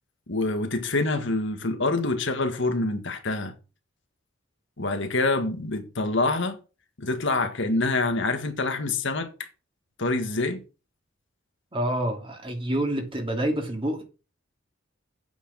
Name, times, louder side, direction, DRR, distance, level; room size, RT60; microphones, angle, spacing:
voice 1, 0.3-3.5 4.8-6.6 7.0-9.3 10.0-10.6, left 2 dB, 65° left, 1.8 m, -26 dB
voice 2, 11.7-14.0, right 1 dB, 25° right, 2.8 m, -27 dB
8.7 x 6.4 x 6.4 m
head